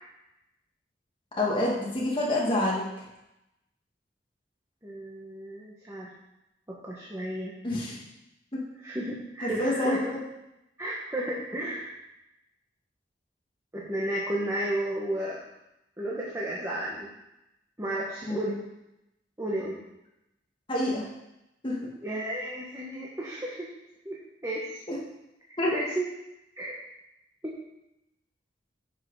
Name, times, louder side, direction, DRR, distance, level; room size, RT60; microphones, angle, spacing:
voice 1, 1.4-3.0 7.6-8.0 8.5-8.6 9.4-10.0 18.3-18.5 20.7-21.0 21.6-21.9 24.9-25.0 25.6-25.7, left 1 dB, 30° left, -5 dB, 2.1 m, -27 dB
voice 2, 4.8-6.1 6.7-7.5 8.8-10.0 10.8-12.0 13.7-15.4 16.0-17.1 17.8-18.6 19.4-19.8 22.0-23.7 24.0-24.8 25.7-26.1 26.6-26.7 27.4-27.6, right 1 dB, 15° right, -5 dB, 1.4 m, -33 dB
10.5 x 5.9 x 4.9 m, 0.89 s
head